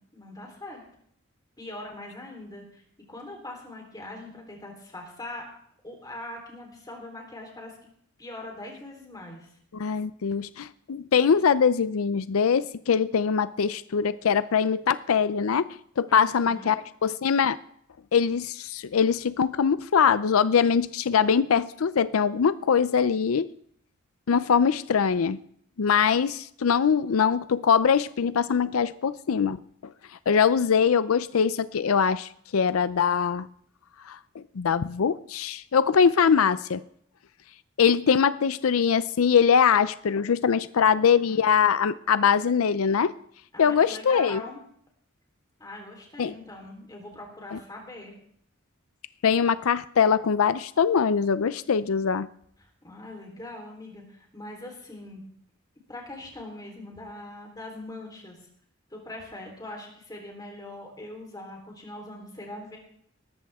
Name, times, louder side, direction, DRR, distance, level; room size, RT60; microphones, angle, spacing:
voice 1, 0.1-0.8 1.6-2.8 3.1-5.4 5.8-7.8 8.2-9.5 16.1-16.8 40.7-41.4 43.5-44.6 45.6-48.1 52.6-55.2 55.9-58.5 58.9-62.8, left 2 dB, 20° left, 1 dB, 3.7 m, -42 dB
voice 2, 9.7-15.7 16.0-16.8 17.0-17.6 18.1-23.5 24.3-25.4 25.8-29.6 30.3-33.5 34.1-36.8 37.8-43.1 43.6-44.4 46.2-46.3 47.5-47.6 49.2-52.3, left 6 dB, 90° left, 15 dB, 0.5 m, -22 dB
18.5 x 14.0 x 3.6 m, 0.66 s
head